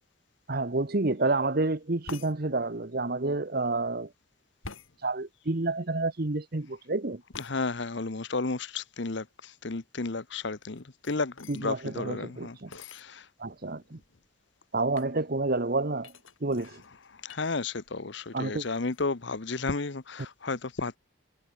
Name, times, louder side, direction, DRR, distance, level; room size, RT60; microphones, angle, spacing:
voice 1, 0.5-4.1 5.0-7.2 11.5-12.7 13.4-14.0 14.7-16.1 16.4-16.8 18.3-18.6, right 2 dB, 45° right, 1.1 m, -29 dB
sound 1, 2.1-2.3 4.6-4.9 7.3-7.5 10.6-11.6 12.7-13.0 13.7-13.8 14.0-14.4 14.9-15.2 16.0-17.5 17.8-18.3 18.6-19.0, left 4 dB, 80° left, 3.0 m, -46 dB
voice 2, 7.4-13.3 17.1-21.0, left 3 dB, 60° left, 1.0 m, -33 dB
head